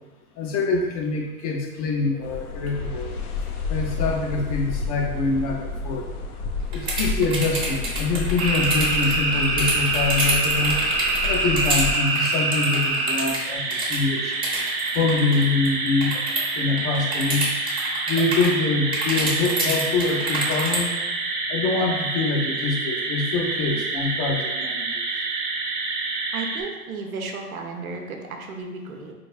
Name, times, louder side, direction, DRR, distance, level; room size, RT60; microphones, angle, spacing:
voice 1, 0.4-3.1 3.7-6.0 6.7-10.8 11.2-14.3 14.9-16.2 16.6-17.5 18.1-20.9 21.5-25.0, left 3 dB, 25° left, 1 dB, 0.5 m, -25 dB
sound 1, 2.2-11.9, left 4 dB, 85° left, 0.7 m, -31 dB
sound 2, 6.7-16.5 16.8-18.6 18.9-20.8, right 2 dB, 10° right, 0.8 m, -27 dB
sound 3, 8.4-26.6, right 3 dB, 45° right, 0.9 m, -26 dB
voice 2, 26.3-29.1, right 3 dB, 75° right, 2 dB, 0.8 m, -34 dB
4.2 x 3.3 x 2.3 m, 1.2 s
hypercardioid pair, 125°, 43 cm